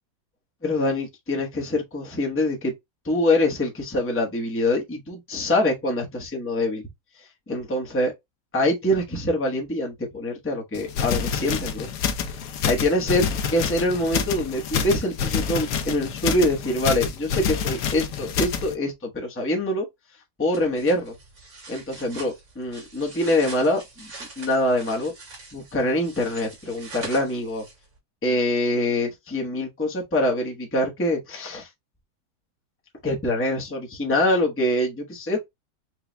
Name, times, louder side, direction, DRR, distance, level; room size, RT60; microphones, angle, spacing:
voice 1, 0.6-2.7 3.0-6.8 7.2-8.1 8.5-11.9 12.3-13.3 13.5-19.9 20.4-21.2 21.7-24.1 24.4-25.1 25.5-27.6 28.2-31.7 33.0-35.4, left 1 dB, 10° left, 0.8 m, -24 dB
sound 1, 10.8-18.7, left 7 dB, 80° left, 1.3 m, -27 dB
sound 2, 20.5-28.0, right 3 dB, 60° right, 2.2 m, -43 dB
4.6 x 2.3 x 3.3 m
omnidirectional pair, 1.8 m